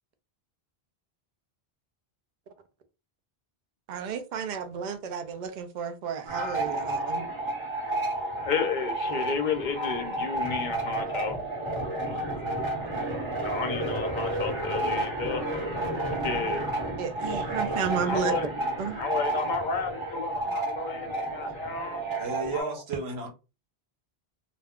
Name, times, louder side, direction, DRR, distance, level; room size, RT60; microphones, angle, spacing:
voice 1, 3.9-7.3 12.1-12.2 16.4-16.5 17.0-18.3 18.8-19.0, right 6 dB, 55° right, 0.6 m, -32 dB
sound 1, 6.3-22.6, right 1 dB, 30° right, 1.1 m, -31 dB
voice 2, 8.4-11.4 13.4-15.4 16.2-16.7 18.0-18.5 19.0-22.3 22.5-22.8, left 5 dB, 55° left, 0.6 m, -32 dB
voice 3, 22.2-23.3, right 3 dB, 85° right, 1.1 m, -33 dB
2.4 x 2.2 x 3.5 m
omnidirectional pair, 1.1 m